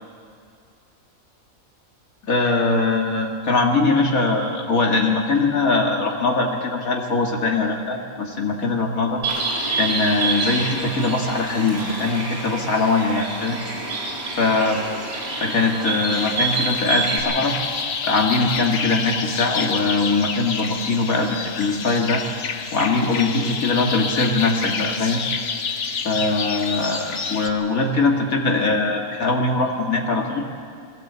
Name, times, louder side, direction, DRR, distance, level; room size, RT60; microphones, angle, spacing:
voice 1, 2.2-9.2 9.8-13.6 14.4-14.8 15.4-17.5 18.0-22.2 22.7-25.3 26.0-30.4, left 3 dB, 75° left, 1 dB, 2.6 m, -21 dB
Bird, 9.2-17.2, right 3 dB, 60° right, 4.2 m, -27 dB
sound 1, 16.1-27.5, left 5 dB, 60° left, 1.3 m, -28 dB
21.0 x 16.0 x 8.1 m, 2.3 s
omnidirectional pair, 1.5 m